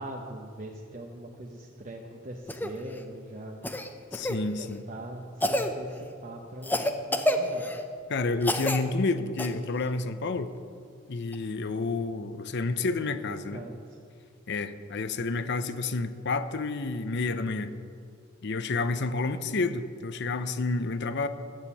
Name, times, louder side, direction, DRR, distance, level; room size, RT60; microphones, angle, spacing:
voice 1, 0.0-3.6 4.6-7.7 12.7-14.0, right 1 dB, 40° right, 0 dB, 0.9 m, -42 dB
Cough, 2.5-2.7 3.6-4.4 5.4-5.7 6.6-7.8 8.4-8.8 9.4-9.5 11.3-11.4, left 1 dB, 10° left, 0.6 m, -28 dB
voice 2, 4.1-4.8 8.1-10.5 11.1-13.6 14.5-17.7 18.4-21.3, left 3 dB, 60° left, 11 dB, 0.7 m, -29 dB
12.0 x 7.3 x 8.4 m, 2.3 s
head